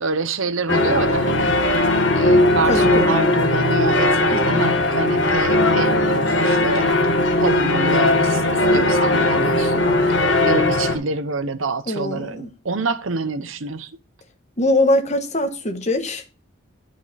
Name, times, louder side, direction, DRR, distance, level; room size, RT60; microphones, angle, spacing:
voice 1, 0.0-1.6 2.1-6.9 7.4-10.0 10.4-13.9, right 3 dB, 85° right, 0.8 m, -26 dB
sound 1, 0.7-11.0, left 2 dB, 65° left, 1.5 m, -18 dB
voice 2, 2.7-3.2 4.3-4.6 11.9-12.5 14.6-16.4, left 1 dB, 35° left, 1.3 m, -22 dB
11.0 x 5.1 x 4.1 m
head